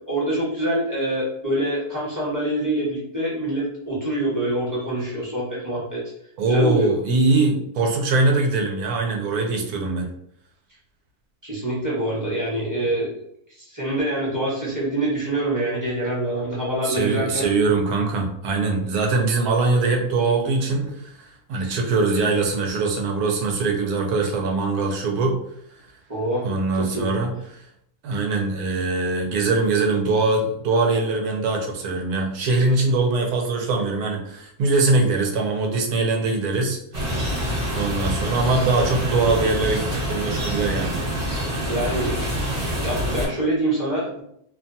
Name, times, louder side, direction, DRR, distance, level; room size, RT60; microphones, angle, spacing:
voice 1, 0.1-6.0 6.5-6.9 11.4-13.1 13.6-17.5 21.5-21.7 26.1-26.5 26.8-27.1 41.7-42.4 42.7-44.2, right 1 dB, 15° right, -7 dB, 0.8 m, -25 dB
voice 2, 6.4-10.1 16.8-25.4 26.4-27.3 28.0-36.8 37.7-41.0, right 3 dB, 85° right, 2 dB, 1.1 m, -22 dB
sound 1, 36.9-43.3, equal, 40° right, 1.3 m, -26 dB
2.8 x 2.3 x 2.6 m, 0.72 s
omnidirectional pair, 1.6 m